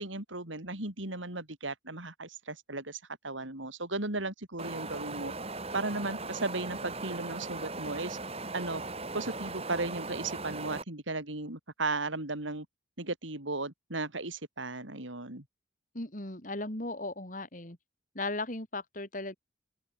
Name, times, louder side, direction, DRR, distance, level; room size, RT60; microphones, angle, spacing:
voice 1, 0.0-5.3 5.7-8.2 8.5-8.8 9.1-12.7 13.0-15.4, right 2 dB, 90° right, 5.0 m, -36 dB
Wind, 4.6-10.8, right 3 dB, 30° right, 7.1 m, -39 dB
voice 2, 15.9-17.8 18.1-19.4, left 2 dB, 45° left, 3.3 m, -37 dB
head